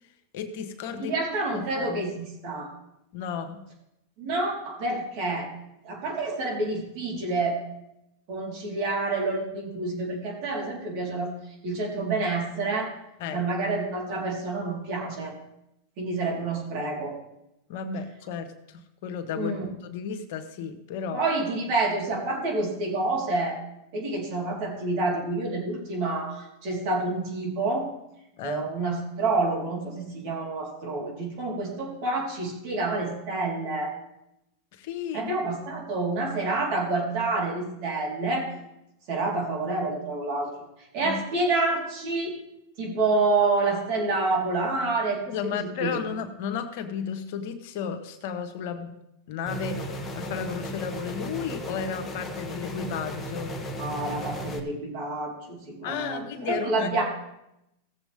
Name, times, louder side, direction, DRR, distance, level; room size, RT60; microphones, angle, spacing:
voice 1, 0.3-1.1 1.5-2.1 3.1-3.6 13.2-13.5 17.7-21.2 28.4-28.7 34.7-35.3 41.0-41.2 45.3-49.0 49.3-53.5 55.8-57.0, left 7 dB, 60° left, 7 dB, 1.3 m, -33 dB
voice 2, 1.0-2.7 4.2-5.5 5.8-7.6 8.3-11.3 11.6-12.9 13.3-15.3 16.0-17.1 19.3-19.7 21.1-23.6 23.9-27.9 28.4-33.9 35.1-38.5 39.1-40.5 40.9-42.4 42.8-45.2 45.5-46.0 53.7-57.0, right 3 dB, 55° right, -2 dB, 4.1 m, -28 dB
sound 1, 49.5-54.6, equal, 15° left, 1.6 m, -35 dB
16.5 x 7.3 x 3.6 m, 0.85 s
hypercardioid pair, 115°, 0 cm